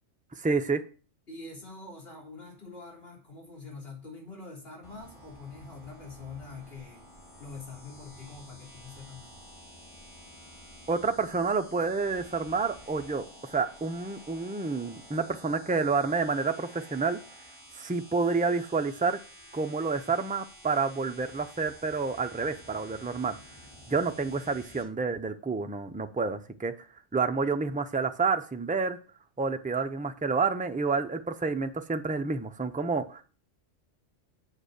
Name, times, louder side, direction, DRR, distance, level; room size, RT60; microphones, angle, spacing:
voice 1, 0.4-0.8 10.9-17.2 17.8-19.2 19.5-23.4 23.9-26.7 27.1-29.0 29.4-33.2, right 4 dB, 10° right, 8 dB, 0.4 m, -29 dB
voice 2, 1.3-7.0 7.4-9.4, left 3 dB, 55° left, -2 dB, 3.7 m, -45 dB
sound 1, 4.8-24.8, equal, 25° left, 3.0 m, -51 dB
7.8 x 6.1 x 6.7 m, 0.39 s
omnidirectional pair, 1.3 m